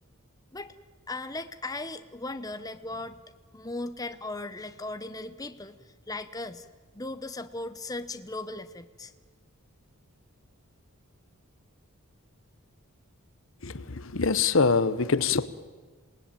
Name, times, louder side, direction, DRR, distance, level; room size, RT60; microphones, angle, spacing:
voice 1, 1.1-3.2 3.5-5.8 6.1-6.7 6.9-9.1, left 2 dB, 15° left, 0.8 m, -37 dB
voice 2, 13.6-15.5, left 4 dB, 60° left, 0.9 m, -24 dB
27.0 x 19.5 x 9.0 m
head